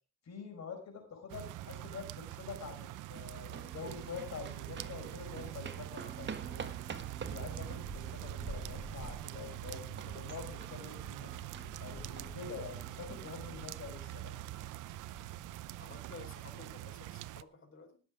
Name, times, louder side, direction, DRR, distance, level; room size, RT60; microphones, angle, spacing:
voice 1, 0.2-6.6 7.3-11.3 11.8-14.3, left 5 dB, 60° left, 3 dB, 4.9 m, -46 dB
sound 1, 1.3-17.4, right 16 dB, 90° right, 0.7 m, -44 dB
sound 2, 2.9-14.7, right 5 dB, 40° right, 1.8 m, -49 dB
sound 3, 5.1-15.9, equal, 10° left, 5.3 m, -52 dB
voice 2, 15.8-18.0, left 3 dB, 40° left, 1 dB, 4.6 m, -53 dB
18.5 x 7.7 x 4.9 m, 0.36 s
cardioid pair, 90°, 30 cm